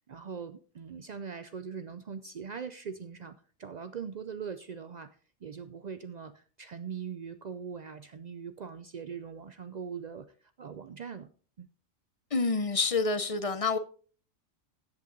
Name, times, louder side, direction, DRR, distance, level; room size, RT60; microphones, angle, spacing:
voice 1, 0.1-11.3 11.6-11.7, right 6 dB, 80° right, 11 dB, 0.4 m, -41 dB
voice 2, 12.3-13.8, left 4 dB, 40° left, 12 dB, 0.5 m, -28 dB
14.0 x 8.4 x 3.8 m, 0.41 s
omnidirectional pair, 1.4 m